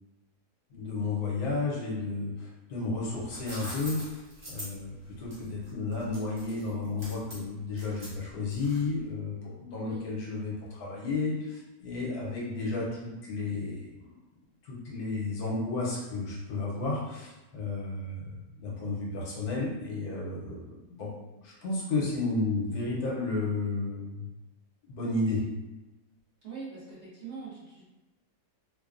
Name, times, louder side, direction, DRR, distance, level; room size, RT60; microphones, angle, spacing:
voice 1, 0.7-4.2 4.5-14.1 14.6-21.1 21.4-24.3 24.8-25.4, left 3 dB, 70° left, -4 dB, 1.2 m, -32 dB
sound 1, 3.0-9.0, equal, 30° right, 0.5 m, -44 dB
voice 2, 26.4-27.8, right 5 dB, 55° right, -8 dB, 0.9 m, -42 dB
3.1 x 2.2 x 2.4 m, 1.0 s
omnidirectional pair, 1.7 m